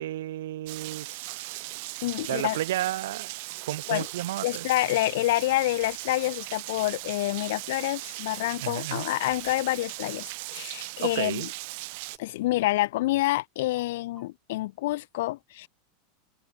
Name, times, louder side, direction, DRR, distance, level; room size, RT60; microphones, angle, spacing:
voice 1, 0.0-1.7 2.3-3.3 3.7-4.6 8.6-9.1 11.0-11.5, right 14 dB, 85° right, 0.6 m, -32 dB
Rain, 0.7-12.2, right 27 dB, 50° right, 2.3 m, -38 dB
sound 1, 1.5-2.0 2.9-3.6 3.9-4.3 4.6-12.4 12.8-13.4 13.8-14.3, right 3 dB, 10° right, 5.2 m, -63 dB
voice 2, 2.0-2.6 3.9-4.1 4.4-11.5 12.2-15.7, left 17 dB, 60° left, 0.4 m, -27 dB
supercardioid pair, 175°, 0 cm